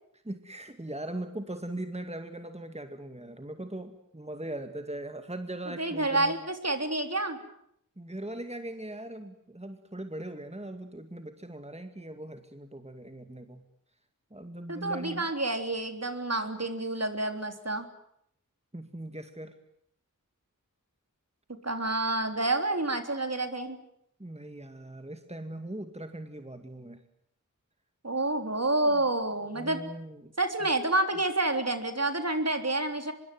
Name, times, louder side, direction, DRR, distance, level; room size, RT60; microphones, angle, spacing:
voice 1, 0.2-6.3 8.0-13.7 14.3-15.3 18.7-19.5 24.2-27.0 28.8-29.0 29.5-30.3, right 1 dB, 20° right, 7 dB, 2.2 m, -40 dB
voice 2, 5.8-7.4 14.7-17.9 21.6-23.8 28.0-29.8 30.4-33.1, right 2 dB, 50° right, 7 dB, 3.6 m, -29 dB
25.0 x 23.0 x 9.4 m, 0.73 s
wide cardioid pair, 50°, 33 cm